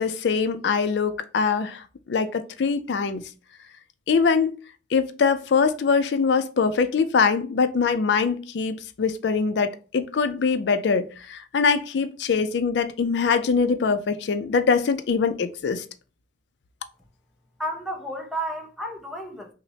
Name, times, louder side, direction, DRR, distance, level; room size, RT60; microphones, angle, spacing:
voice 1, 0.0-3.2 4.1-4.5 4.9-15.8, left 5 dB, 70° left, 0.4 m, -23 dB
voice 2, 17.6-19.5, right 1 dB, ahead, 0.5 m, -32 dB
5.9 x 2.1 x 2.7 m
head